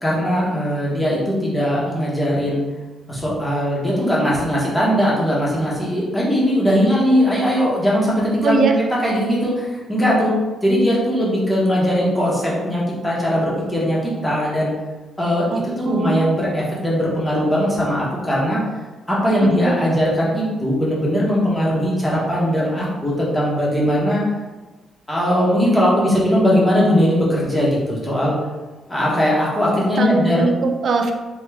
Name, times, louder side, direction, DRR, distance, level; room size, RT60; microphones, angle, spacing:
voice 1, 0.0-2.6 3.1-10.3 10.6-14.7 15.2-18.6 19.1-24.2 25.1-28.4 28.9-30.5, equal, 10° left, -6 dB, 1.1 m, -19 dB
voice 2, 8.4-8.7 15.5-16.3 19.6-19.7 30.0-31.1, right 3 dB, 45° right, 4 dB, 0.4 m, -21 dB
4.4 x 2.9 x 3.4 m, 1.2 s
cardioid pair, 170°, 0 cm